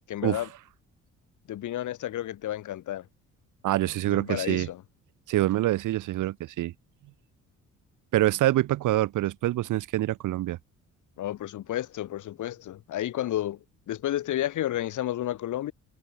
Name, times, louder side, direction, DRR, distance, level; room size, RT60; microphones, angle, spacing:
voice 1, 0.1-0.5 1.5-3.1 4.1-4.8 11.2-13.6 13.9-15.7, left 13 dB, 80° left, 6.2 m, -31 dB
voice 2, 3.6-4.7 5.3-6.7 8.1-10.6, right 15 dB, 85° right, 3.3 m, -25 dB
cardioid pair, 90°, 30 cm